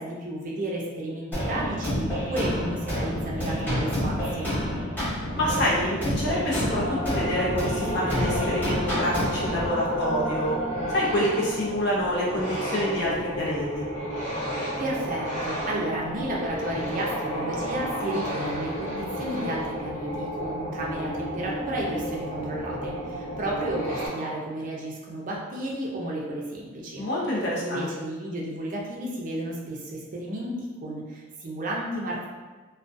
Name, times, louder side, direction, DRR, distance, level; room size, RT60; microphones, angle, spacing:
voice 1, 0.0-4.5 14.6-27.1 27.6-32.3, right 1 dB, 40° right, -3 dB, 0.4 m, -32 dB
sound 1, 1.3-9.7, equal, 10° left, 0.9 m, -29 dB
voice 2, 5.3-10.6 10.9-13.9 27.0-27.8, equal, 60° left, -5 dB, 0.7 m, -27 dB
sound 2, 6.4-24.1, equal, 35° left, 1.1 m, -31 dB
2.3 x 2.2 x 2.4 m, 1.3 s
head